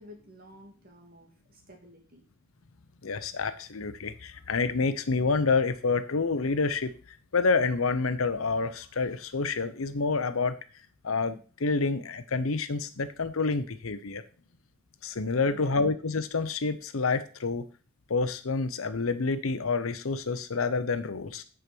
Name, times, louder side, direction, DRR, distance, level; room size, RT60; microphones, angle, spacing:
voice 1, 0.0-2.2 15.5-15.9, left 1 dB, 45° right, 1 dB, 2.5 m, -51 dB
voice 2, 3.0-6.9 7.3-10.5 11.0-14.2 15.0-17.6 18.1-21.4, left 4 dB, 85° left, 12 dB, 0.8 m, -28 dB
9.6 x 5.0 x 6.1 m, 0.37 s
head